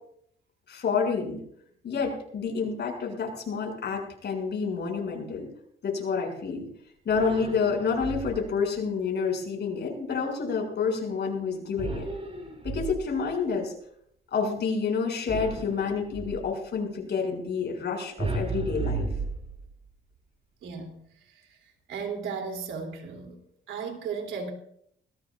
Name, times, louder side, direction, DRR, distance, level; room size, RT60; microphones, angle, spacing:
voice 1, 0.7-1.4 1.8-5.5 5.8-6.7 7.1-12.1 12.6-13.7 14.3-19.1, left 5 dB, 60° left, 1 dB, 7.1 m, -29 dB
sound 1, 7.1-8.6 11.8-13.3 15.3-16.5 18.2-19.9, right 3 dB, 30° right, 7.2 m, -34 dB
voice 2, 20.6-21.0 21.5-21.6 21.9-23.4 23.7-24.5, right 5 dB, 80° right, 4 dB, 3.3 m, -35 dB
21.0 x 20.5 x 2.6 m, 0.69 s
cardioid pair, 90°, 20 cm